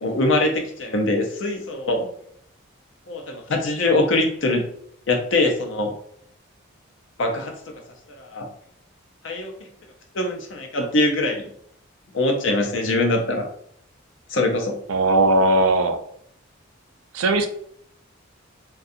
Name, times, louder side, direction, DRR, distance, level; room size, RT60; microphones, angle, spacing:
voice 1, 0.0-2.1 3.1-4.6 5.1-5.9 7.2-7.5 8.2-8.5 9.2-9.5 10.1-11.5 12.1-13.4 14.3-14.8, left 2 dB, 65° left, 2 dB, 0.6 m, -22 dB
voice 2, 14.9-16.0 17.1-17.5, right 2 dB, 85° right, 7 dB, 0.4 m, -18 dB
2.4 x 2.3 x 2.6 m, 0.66 s
head